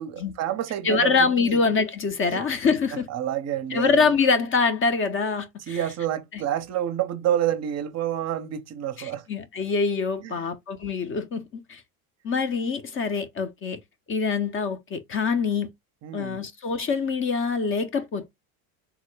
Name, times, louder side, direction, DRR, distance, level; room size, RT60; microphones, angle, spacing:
voice 1, 0.0-1.1 1.4-1.6 2.3-2.4 2.9-4.1 5.7-9.2 10.2-10.5 16.0-16.4, right 11 dB, 40° right, 0.6 m, -29 dB
voice 2, 0.8-3.1 3.7-5.8 6.3-6.4 9.0-11.8 12.2-13.8 14.1-15.7 16.1-18.3, left 5 dB, 30° left, 0.5 m, -25 dB
3.6 x 2.1 x 3.1 m
supercardioid pair, 105°, 43 cm